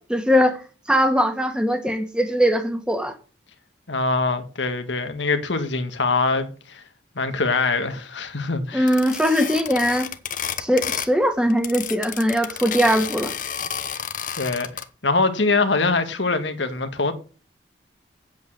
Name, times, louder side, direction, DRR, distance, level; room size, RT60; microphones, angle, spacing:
voice 1, 0.1-3.1 8.7-10.1 10.6-13.3, equal, 5° right, 1.8 m, -21 dB
voice 2, 3.9-6.8 7.1-9.0 14.4-14.7 15.0-17.1, left 3 dB, 90° left, 1.7 m, -23 dB
sound 1, 8.9-11.2 11.5-14.8, left 8 dB, 45° left, 1.0 m, -30 dB
9.0 x 8.2 x 6.2 m
head